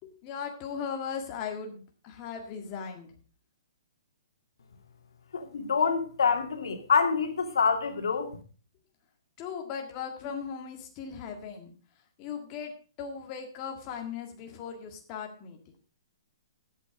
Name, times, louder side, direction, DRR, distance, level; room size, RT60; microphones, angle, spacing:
voice 1, 0.0-3.1 9.4-11.7 12.2-15.6, left 6 dB, 25° left, 1.9 m, -38 dB
voice 2, 5.3-8.3, left 5 dB, 80° left, 2.4 m, -26 dB
13.0 x 8.3 x 4.9 m
hypercardioid pair, 160°, 2 cm